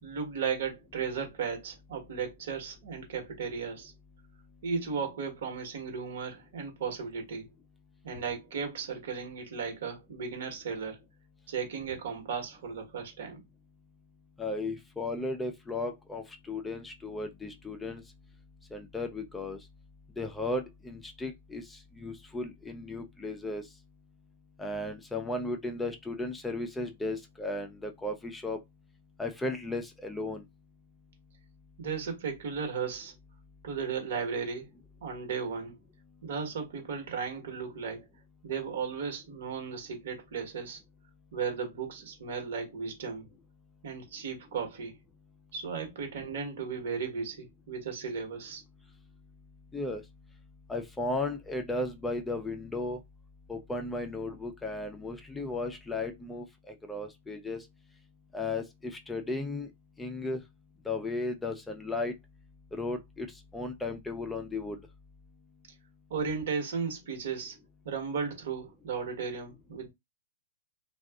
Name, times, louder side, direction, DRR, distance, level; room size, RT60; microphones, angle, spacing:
voice 1, 0.0-3.9 4.6-7.5 8.0-11.0 11.5-13.4 31.8-33.1 33.6-34.7 35.0-35.8 36.2-38.0 38.4-40.8 41.3-43.3 43.8-44.9 45.5-48.6 66.1-67.6 67.8-69.9, right 6 dB, 70° right, 1.2 m, -35 dB
voice 2, 14.4-18.0 18.7-19.6 20.2-23.6 24.6-28.6 29.2-30.4 49.7-50.0 50.7-53.0 53.5-57.7 58.3-59.7 60.0-60.4 60.8-62.1 62.7-64.8, left 2 dB, 10° left, 0.4 m, -35 dB
2.6 x 2.3 x 2.3 m
hypercardioid pair, 120°, 0 cm